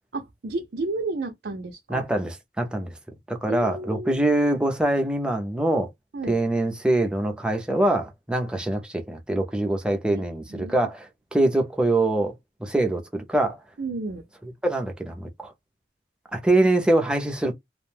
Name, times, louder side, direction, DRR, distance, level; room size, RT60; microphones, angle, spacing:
voice 1, 0.1-2.0 3.5-4.3 6.1-6.4 10.1-10.2 10.5-10.9 13.8-14.2, right 3 dB, 70° right, 0.5 m, -32 dB
voice 2, 1.9-2.9 3.3-5.9 6.3-13.6 14.6-15.5 16.3-17.5, right 1 dB, 5° right, 0.5 m, -24 dB
2.5 x 2.1 x 3.2 m
head